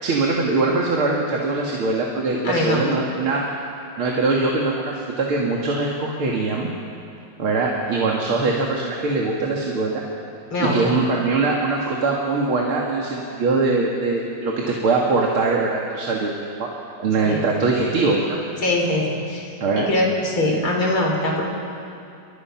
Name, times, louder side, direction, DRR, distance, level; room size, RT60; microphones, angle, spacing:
voice 1, 0.0-3.4 4.0-6.7 7.4-10.0 10.6-16.3 16.6-16.7 17.0-18.4 19.6-19.9, right 3 dB, 90° right, -2 dB, 3.0 m, -22 dB
voice 2, 2.4-2.8 10.5-10.8 17.2-17.5 18.6-19.4 19.8-21.4, left 1 dB, 85° left, -1 dB, 5.3 m, -22 dB
28.5 x 25.0 x 6.0 m, 2.5 s
omnidirectional pair, 2.3 m